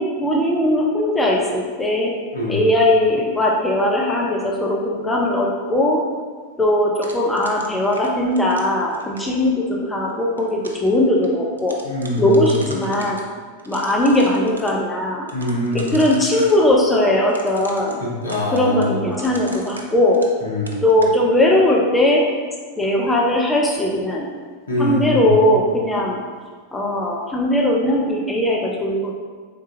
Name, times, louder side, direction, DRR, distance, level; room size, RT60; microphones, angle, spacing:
voice 1, 0.0-2.1 2.5-6.0 6.6-11.8 12.2-13.2 13.7-15.3 15.7-18.0 18.5-20.2 20.8-22.3 22.8-24.3 24.8-26.2 26.7-29.1, left 1 dB, 10° left, -2 dB, 0.5 m, -19 dB
voice 2, 2.3-2.6 11.8-12.4 15.3-15.9 18.0-19.0 20.4-20.8 24.7-25.2, left 2 dB, 70° left, -4 dB, 1.0 m, -24 dB
sound 1, 7.0-9.4 10.1-10.9 11.2-11.3 11.6-13.2 13.6-14.7 15.3-16.6 17.3-20.4 20.7-21.1, right 2 dB, 75° right, 0.5 m, -39 dB
4.3 x 3.5 x 2.8 m, 1.5 s
figure-of-eight pair, 90°, 0 cm